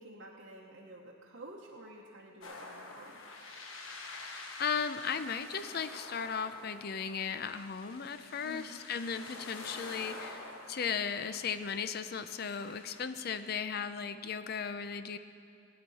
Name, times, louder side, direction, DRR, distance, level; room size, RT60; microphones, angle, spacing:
voice 1, 0.0-3.2 8.4-8.8, right 1 dB, 60° right, -4 dB, 1.0 m, -50 dB
sound 1, 2.4-13.0, left 3 dB, 80° left, 1.2 m, -48 dB
voice 2, 4.6-15.2, left 6 dB, 50° left, 11 dB, 0.5 m, -36 dB
17.0 x 9.5 x 4.1 m, 2.7 s
head